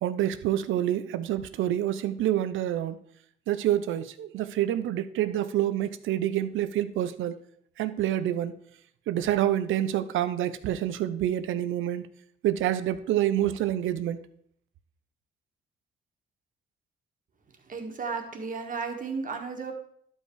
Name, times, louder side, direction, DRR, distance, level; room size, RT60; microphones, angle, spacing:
voice 1, 0.0-3.0 3.5-7.3 7.8-8.5 9.1-12.0 12.4-14.2, right 12 dB, 80° right, 13 dB, 0.6 m, -27 dB
voice 2, 17.7-19.7, right 4 dB, 40° right, 3 dB, 1.8 m, -34 dB
11.5 x 5.5 x 4.7 m, 0.65 s
cardioid pair, 90°, 20 cm